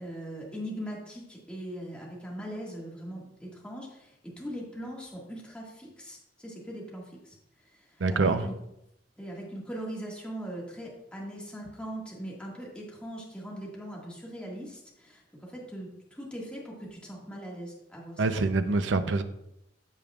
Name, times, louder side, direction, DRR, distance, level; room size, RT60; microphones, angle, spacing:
voice 1, 0.0-8.6 9.2-18.5, equal, 5° left, -3 dB, 1.8 m, -40 dB
voice 2, 8.0-8.4 18.2-19.2, right 3 dB, 85° right, 10 dB, 0.6 m, -25 dB
14.0 x 5.2 x 2.4 m, 0.83 s
head